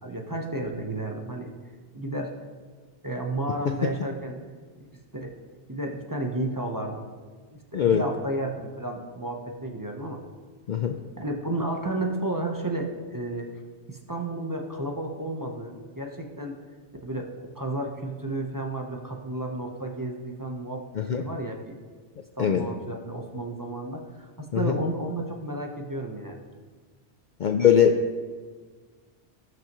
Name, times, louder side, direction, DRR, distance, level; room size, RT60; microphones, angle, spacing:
voice 1, 0.0-1.5 1.9-2.3 3.0-4.4 4.8-4.9 5.1-5.3 5.7-7.1 7.5-10.2 11.2-13.5 13.9-16.5 17.0-17.3 17.5-20.8 21.1-21.7 22.4-26.4, right 2 dB, 20° right, 1 dB, 0.8 m, -32 dB
voice 2, 27.4-28.2, left 8 dB, 55° left, 5 dB, 0.5 m, -21 dB
18.0 x 6.2 x 3.0 m, 1.5 s
omnidirectional pair, 1.1 m